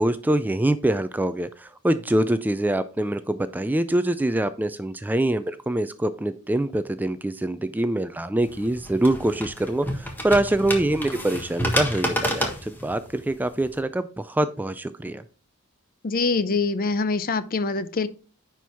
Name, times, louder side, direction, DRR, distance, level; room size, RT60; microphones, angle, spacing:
voice 1, 0.0-15.2, right 1 dB, 10° right, 12 dB, 0.3 m, -24 dB
sound 1, 8.4-13.8, equal, 10° left, 1.4 m, -30 dB
voice 2, 16.0-18.1, left 4 dB, 40° left, 13 dB, 0.6 m, -24 dB
10.0 x 4.6 x 3.5 m, 0.38 s
head